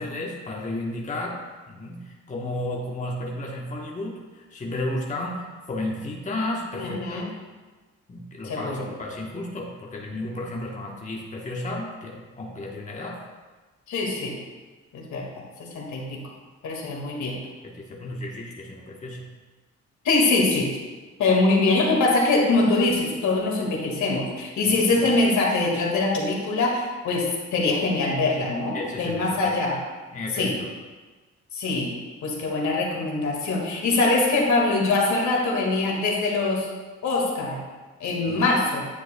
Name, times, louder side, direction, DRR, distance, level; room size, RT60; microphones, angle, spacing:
voice 1, 0.0-7.2 8.1-13.2 17.6-19.3 24.7-25.1 28.7-29.6 30.1-30.7 38.3-38.4, left 1 dB, 25° left, -1 dB, 1.1 m, -33 dB
voice 2, 6.8-7.3 8.4-8.9 13.9-14.4 14.9-15.2 15.6-16.2 16.6-17.4 20.0-20.7 21.2-29.8 30.4-30.5 31.5-36.7 37.0-37.6 38.0-38.9, left 3 dB, 70° left, -1 dB, 1.9 m, -23 dB
9.5 x 7.5 x 2.2 m, 1.3 s
cardioid pair, 90°, 30 cm